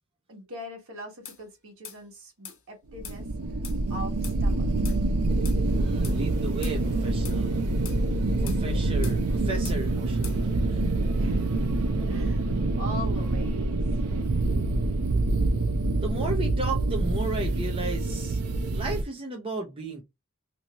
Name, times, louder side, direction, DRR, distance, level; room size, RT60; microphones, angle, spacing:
voice 1, 0.3-3.3 3.9-4.7 11.1-13.8, equal, 60° right, 1.5 m, -41 dB
sound 1, 1.2-1.4 1.8-2.0 2.4-2.6 3.0-3.2 3.6-3.8 4.2-4.4 4.8-5.0 5.4-5.6 6.0-6.2 6.6-6.8 7.2-7.4 7.8-8.0 8.5-8.6 9.0-9.2 9.6-9.8 10.2-10.4, left 8 dB, 65° left, 0.9 m, -42 dB
Creepy Dark Ambience, 2.9-19.0, right 2 dB, 80° right, 0.6 m, -26 dB
voice 2, 5.7-7.6 8.4-10.9 16.0-18.4 18.7-20.0, right 2 dB, 25° right, 0.6 m, -34 dB
3.0 x 2.7 x 2.8 m
head